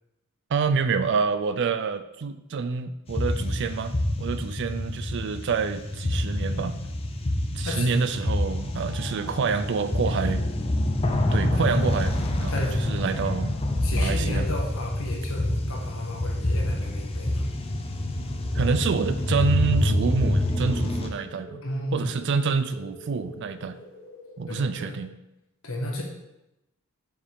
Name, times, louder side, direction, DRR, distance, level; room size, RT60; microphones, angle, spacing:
voice 1, 0.5-6.7 7.5-10.5 11.3-13.5 13.9-14.5 18.5-21.6 21.9-23.8 24.4-25.1, right 5 dB, 55° right, 11 dB, 0.4 m, -27 dB
sound 1, 3.1-21.1, left 1 dB, 25° left, 0.6 m, -27 dB
voice 2, 7.6-8.0 12.5-12.8 13.8-17.4 21.6-22.1 24.4-24.9 25.6-26.0, left 1 dB, 75° left, -1 dB, 1.4 m, -32 dB
sound 2, 18.5-25.0, right 1 dB, 10° right, 2.2 m, -46 dB
7.1 x 4.8 x 3.6 m, 0.90 s
head